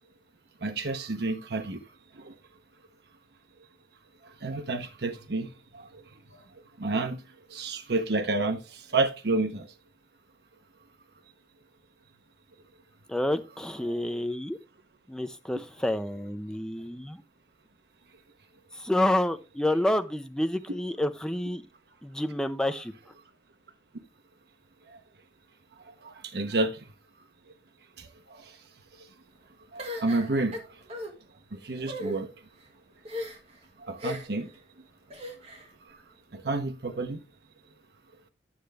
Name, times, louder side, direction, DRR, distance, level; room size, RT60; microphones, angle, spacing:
voice 1, 0.6-1.8 2.2-2.3 4.4-5.5 5.7-6.0 6.8-7.2 7.5-9.7 13.9-14.0 24.9-25.0 26.0-26.8 28.0-28.6 29.7-30.8 31.5-32.3 33.8-34.5 36.3-37.2, right 2 dB, 60° right, 0.8 m, -30 dB
voice 2, 13.1-14.6 15.1-17.2 18.7-21.6 22.0-22.9, left 1 dB, 5° left, 0.5 m, -29 dB
sound 1, 29.8-31.1 31.8-32.2 33.0-33.6 34.0-34.4 35.1-35.7, left 1 dB, 35° right, 1.5 m, -37 dB
9.8 x 6.5 x 3.4 m
head